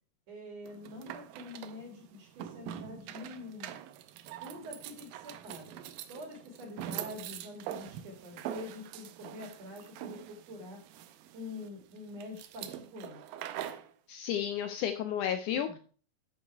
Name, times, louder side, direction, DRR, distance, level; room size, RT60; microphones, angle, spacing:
voice 1, 0.3-3.8 4.4-10.8 11.3-13.3 15.5-15.8, left 2 dB, 50° right, 3 dB, 3.0 m, -46 dB
sound 1, 0.7-13.9, right 11 dB, 85° right, 2.5 m, -44 dB
voice 2, 14.1-15.8, left 9 dB, 80° left, 9 dB, 1.9 m, -32 dB
11.0 x 5.2 x 4.5 m, 0.40 s
omnidirectional pair, 4.0 m